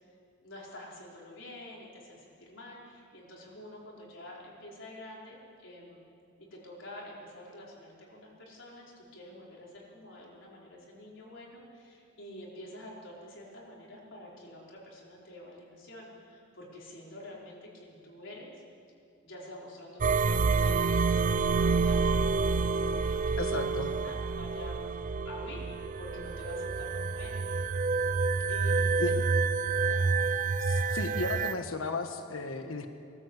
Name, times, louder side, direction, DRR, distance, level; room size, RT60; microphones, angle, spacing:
voice 1, 0.4-6.0 6.4-18.6 19.2-25.7 26.0-27.4 28.5-29.1 29.9-30.1, left 1 dB, 65° left, -4 dB, 4.8 m, -48 dB
sound 1, 20.0-31.5, right 4 dB, 40° right, 0.4 m, -28 dB
voice 2, 23.4-23.9 29.0-29.1 30.6-32.9, left 3 dB, 85° left, 6 dB, 1.3 m, -34 dB
22.5 x 14.0 x 8.2 m, 2.5 s
head